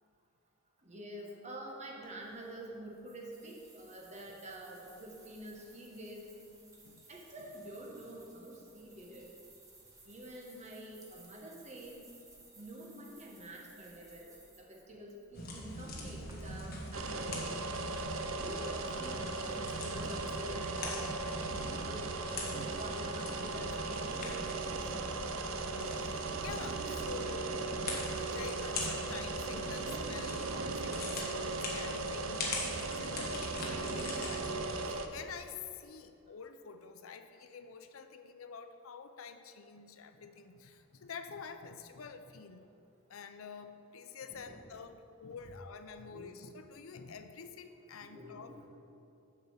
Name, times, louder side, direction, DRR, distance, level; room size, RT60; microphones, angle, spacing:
voice 1, 0.8-6.3 7.1-9.3 10.0-12.0 12.6-17.6 18.3-21.1 21.5-22.1 22.5-24.4 34.3-34.4 44.3-44.6 46.0-46.4 48.0-48.7, right 1 dB, 35° right, -1 dB, 1.3 m, -48 dB
sound 1, 2.0-16.3, right 2 dB, 15° right, 1.3 m, -60 dB
sound 2, 15.3-34.8, left 1 dB, 45° left, 1.4 m, -42 dB
sound 3, 16.9-35.1, right 3 dB, 80° right, 0.6 m, -38 dB
voice 2, 24.5-25.2 25.8-27.6 28.2-42.6 43.1-48.7, left 5 dB, 80° left, 9 dB, 0.5 m, -48 dB
7.4 x 5.3 x 7.2 m, 2.7 s
head